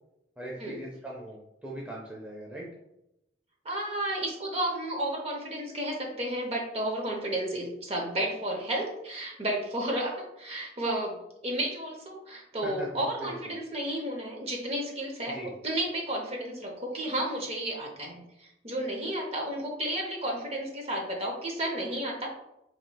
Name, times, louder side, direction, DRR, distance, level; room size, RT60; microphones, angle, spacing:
voice 1, 0.4-2.7 12.6-13.3 15.3-15.5, right 1 dB, 5° right, -4 dB, 0.5 m, -40 dB
voice 2, 3.6-11.1 11.4-22.3, right 1 dB, 35° right, 0 dB, 0.7 m, -32 dB
4.8 x 3.0 x 2.3 m, 0.86 s
head